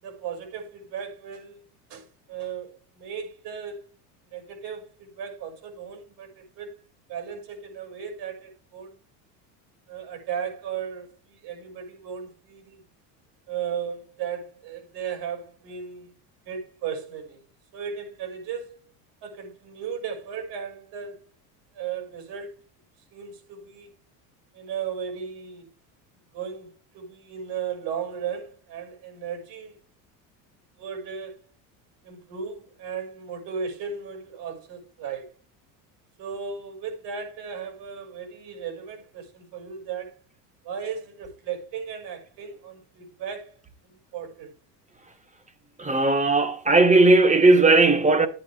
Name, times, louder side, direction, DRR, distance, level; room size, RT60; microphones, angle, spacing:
voice 1, 0.0-1.6 1.9-3.9 4.2-6.7 7.1-9.0 9.9-12.8 13.5-16.1 16.5-17.4 17.7-18.8 19.2-21.2 21.7-22.5 23.1-23.9 24.5-25.7 26.3-29.8 30.8-31.4 32.0-35.3 36.2-40.2 40.6-43.6 43.8-44.5, right 7 dB, 65° right, 6.3 m, -36 dB
voice 2, 45.8-48.3, right 2 dB, 15° right, 2.0 m, -17 dB
12.0 x 9.0 x 3.6 m
supercardioid pair, 100°, 46 cm